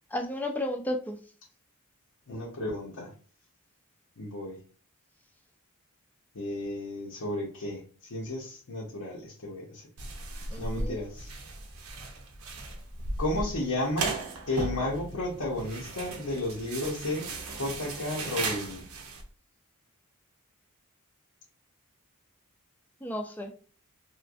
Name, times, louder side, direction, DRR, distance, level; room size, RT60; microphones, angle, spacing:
voice 1, 0.1-1.2 10.5-11.0 23.0-23.5, left 1 dB, 10° left, 3 dB, 0.4 m, -33 dB
voice 2, 2.3-3.1 4.2-4.6 6.3-9.8 10.6-11.3 13.2-18.8, left 1 dB, 85° left, -4 dB, 0.9 m, -33 dB
sound 1, 10.0-19.2, right 3 dB, 75° right, 0.7 m, -36 dB
3.1 x 2.5 x 2.4 m, 0.40 s
head